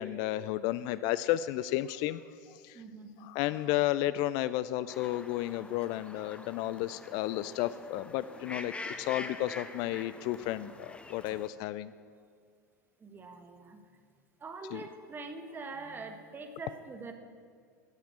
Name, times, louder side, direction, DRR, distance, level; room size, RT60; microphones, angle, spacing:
voice 1, 0.0-2.2 2.5-2.8 3.2-11.9 14.7-14.8, left 14 dB, 50° left, 16 dB, 0.4 m, -32 dB
voice 2, 2.7-3.3 13.0-13.8 14.4-17.1, right 3 dB, 20° right, 6 dB, 1.5 m, -44 dB
sound 1, 4.9-11.5, left 3 dB, 10° left, 0.9 m, -45 dB
16.0 x 5.9 x 8.4 m, 2.1 s
figure-of-eight pair, 80°, 9 cm